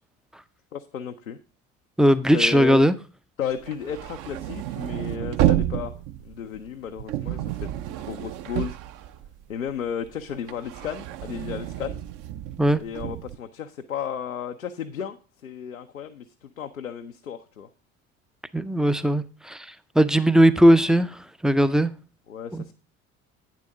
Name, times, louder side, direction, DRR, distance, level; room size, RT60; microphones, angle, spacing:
voice 1, 0.7-1.4 2.3-2.8 3.4-8.8 9.5-12.0 12.8-15.2 15.4-17.7 22.3-22.7, left 8 dB, 90° left, 0.5 m, -34 dB
voice 2, 2.0-2.9 12.6-12.8 18.5-19.6 20.0-21.1 21.4-21.9 22.5-22.6, equal, ahead, 0.4 m, -18 dB
sound 1, 3.6-9.7 10.0-13.4, right 13 dB, 50° right, 0.6 m, -30 dB
8.9 x 7.4 x 3.8 m
figure-of-eight pair, 60°, 39 cm